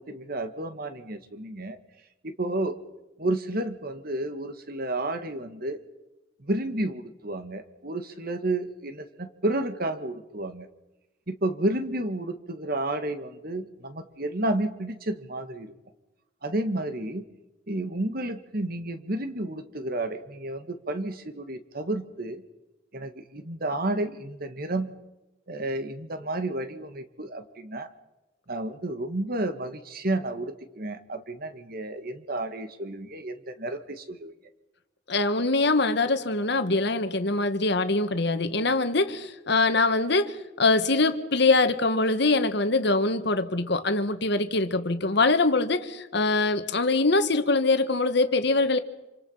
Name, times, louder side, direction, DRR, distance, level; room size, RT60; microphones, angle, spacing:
voice 1, 0.0-1.8 2.2-2.8 3.2-5.8 6.4-10.7 11.3-15.7 16.4-17.2 17.7-22.4 22.9-24.9 25.5-27.9 28.5-34.3, right 1 dB, 50° right, 9 dB, 1.9 m, -31 dB
voice 2, 35.1-48.8, left 3 dB, 60° left, 9 dB, 1.7 m, -23 dB
27.5 x 26.5 x 5.7 m, 1.0 s
head